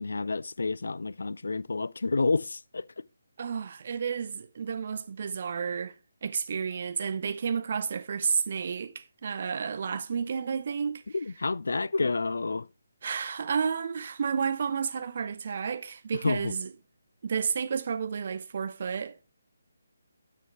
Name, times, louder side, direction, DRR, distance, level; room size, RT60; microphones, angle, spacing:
voice 1, 0.0-2.9 11.1-12.7 16.2-16.5, left 3 dB, 60° left, 0.3 m, -29 dB
voice 2, 3.4-5.9 6.2-11.0 13.0-16.7 17.2-19.2, right 6 dB, 45° right, 0.7 m, -31 dB
8.9 x 7.4 x 3.1 m
figure-of-eight pair, 145°, 0 cm